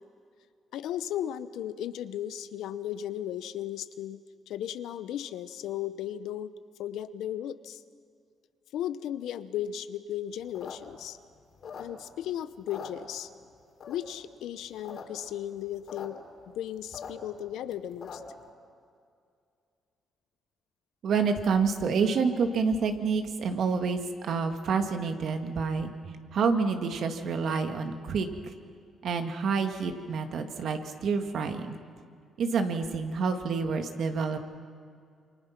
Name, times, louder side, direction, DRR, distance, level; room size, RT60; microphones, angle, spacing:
voice 1, 0.7-6.5 6.8-7.8 8.7-11.2 11.8-13.3 13.9-16.2 16.5-18.2, left 11 dB, 85° left, 13 dB, 0.8 m, -35 dB
sound 1, 10.4-12.2 12.5-13.4 13.8-14.2 14.6-15.0 15.3-15.4 15.5-16.1 16.4-18.4, left 6 dB, 60° left, 3.8 m, -43 dB
voice 2, 21.0-25.9 26.3-28.3 29.0-31.8 32.4-34.4, right 5 dB, 65° right, 6 dB, 1.9 m, -28 dB
28.0 x 24.0 x 5.9 m, 2.3 s
cardioid pair, 90°, 0 cm